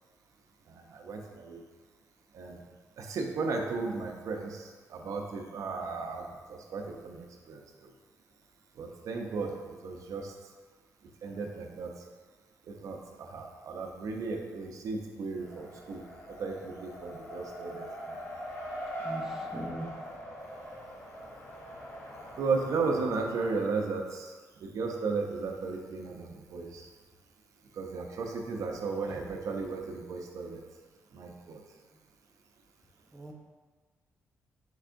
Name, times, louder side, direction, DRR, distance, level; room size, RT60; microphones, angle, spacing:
voice 1, 0.7-1.6 2.3-2.6 3.0-7.9 8.8-9.6 9.8-10.3 11.2-11.9 12.7-16.0 16.4-18.2 22.4-24.3 24.6-26.9 27.7-30.6 31.1-31.6, right 4 dB, 75° right, 2 dB, 0.5 m, -35 dB
Race car auto racing, 15.4-23.5, equal, 45° left, 1.0 m, -42 dB
voice 2, 19.0-19.9 33.1-33.3, right 1 dB, 5° right, 0 dB, 0.6 m, -40 dB
4.6 x 4.4 x 2.5 m, 1.4 s
cardioid pair, 95°, 6 cm